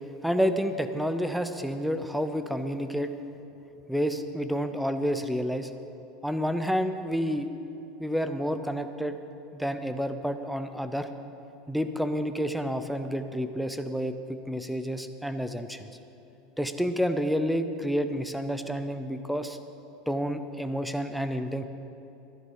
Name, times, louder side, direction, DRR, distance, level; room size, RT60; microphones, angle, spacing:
voice 1, 0.2-3.1 3.9-5.7 6.2-7.5 8.0-9.2 9.5-11.1 11.7-15.9 16.6-19.6 20.1-21.6, equal, ahead, 9 dB, 0.7 m, -29 dB
12.5 x 11.0 x 5.6 m, 2.9 s
supercardioid pair, 115°, 0 cm